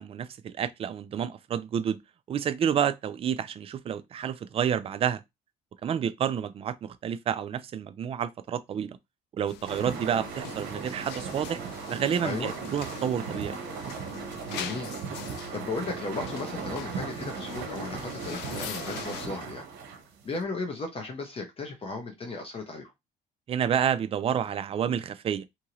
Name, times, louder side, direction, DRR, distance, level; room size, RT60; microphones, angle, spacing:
voice 1, 0.0-2.0 2.3-5.2 5.8-9.0 9.3-11.6 11.9-13.5 23.5-25.4, right 8 dB, 35° right, 0.4 m, -29 dB
sound 1, 9.5-19.3, left 11 dB, 85° left, 0.4 m, -43 dB
sound 2, 9.7-20.4, right 6 dB, 80° right, 0.8 m, -37 dB
voice 2, 14.5-15.0 15.5-19.6 20.2-22.9, left 3 dB, 35° left, 0.7 m, -35 dB
2.8 x 2.6 x 2.9 m
cardioid pair, 110°, 17 cm